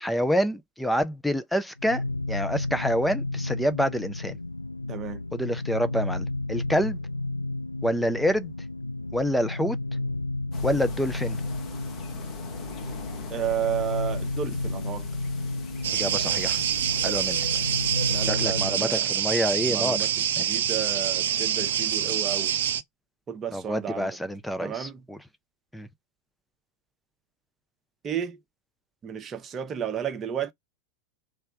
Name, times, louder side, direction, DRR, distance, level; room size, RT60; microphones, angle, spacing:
voice 1, 0.0-2.0 2.3-4.4 5.3-7.0 7.8-8.5 9.1-9.8 10.6-11.4 15.9-16.6 17.0-17.4 18.3-20.0 23.5-25.2 25.7-25.9, equal, 5° left, 0.6 m, -27 dB
sound 1, 1.8-18.8, left 2 dB, 85° left, 0.3 m, -32 dB
voice 2, 4.9-5.2 13.3-15.1 18.1-19.1 19.7-22.5 23.3-24.2 24.6-25.1 28.0-28.4 29.0-30.5, right 9 dB, 25° right, 0.9 m, -32 dB
sound 2, 10.5-18.3, left 4 dB, 30° left, 1.1 m, -43 dB
sound 3, 15.8-22.8, right 9 dB, 60° right, 0.5 m, -26 dB
3.4 x 3.4 x 4.5 m
figure-of-eight pair, 90°, 0 cm